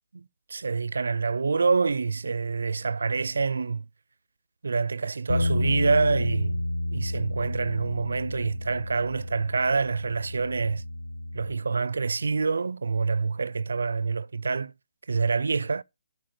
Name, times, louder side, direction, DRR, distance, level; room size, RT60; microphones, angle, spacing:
voice 1, 0.5-3.9 4.6-6.6 6.9-10.8 11.3-14.7 15.1-15.8, right 4 dB, 85° right, 0.5 m, -26 dB
Bass guitar, 5.3-11.5, left 1 dB, 75° left, 1.2 m, -30 dB
10.5 x 4.7 x 6.7 m
hypercardioid pair, 170°, 0 cm